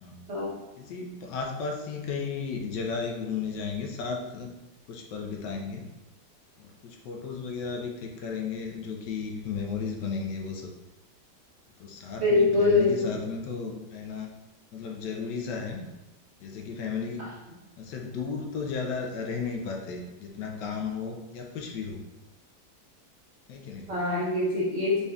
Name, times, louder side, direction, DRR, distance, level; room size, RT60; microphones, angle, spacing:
voice 1, 0.8-4.5 4.9-5.8 6.6-10.7 11.8-14.3 14.7-15.9 16.4-17.3 17.8-22.0 23.5-24.0, left 5 dB, 85° left, 1 dB, 1.3 m, -34 dB
voice 2, 12.2-13.1 23.9-25.0, left 3 dB, 50° right, -7 dB, 0.9 m, -24 dB
4.1 x 3.4 x 2.3 m, 1.0 s
omnidirectional pair, 1.8 m